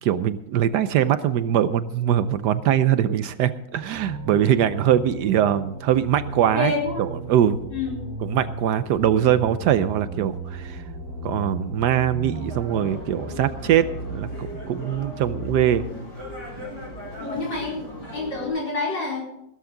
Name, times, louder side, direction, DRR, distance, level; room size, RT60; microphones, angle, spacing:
voice 1, 0.0-6.7 7.0-7.6 8.2-10.8 11.2-15.8, right 10 dB, 70° right, 14 dB, 1.1 m, -22 dB
sound 1, 3.8-15.8, right 1 dB, 10° right, 4.1 m, -36 dB
voice 2, 6.5-7.0 7.7-7.9 17.2-19.2, left 3 dB, 70° left, -2 dB, 4.8 m, -27 dB
sound 2, 12.3-18.5, left 1 dB, 40° left, 7.3 m, -38 dB
15.5 x 13.0 x 3.9 m, 0.82 s
omnidirectional pair, 2.0 m